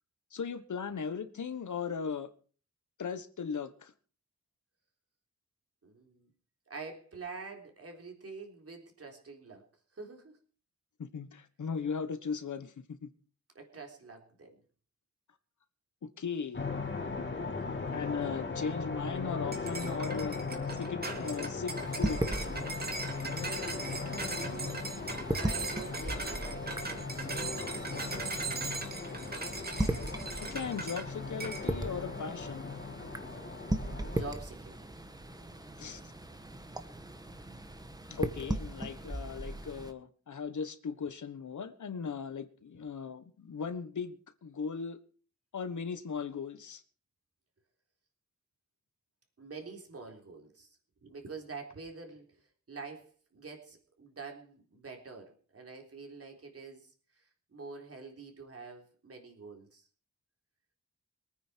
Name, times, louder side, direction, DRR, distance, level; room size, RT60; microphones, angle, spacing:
voice 1, 0.3-2.3 3.0-3.9 11.0-13.1 16.0-16.7 17.9-20.4 20.7-22.2 29.9-30.1 30.4-32.7 35.8-36.1 38.1-45.0 45.5-46.8, left 6 dB, 75° left, 1.4 m, -38 dB
voice 2, 5.8-6.3 6.7-9.7 9.9-10.3 13.6-14.6 23.2-23.8 24.2-25.0 25.3-28.3 33.8-35.5 49.4-56.9 57.5-59.9, right 4 dB, 50° right, 3.9 m, -47 dB
sound 1, 16.5-34.3, left 4 dB, 40° left, 2.7 m, -38 dB
sound 2, 19.5-31.1 31.4-31.7, right 3 dB, 30° right, 2.8 m, -39 dB
sound 3, 21.7-39.9, right 1 dB, 10° right, 1.2 m, -38 dB
23.5 x 9.5 x 4.6 m
wide cardioid pair, 165°, 31 cm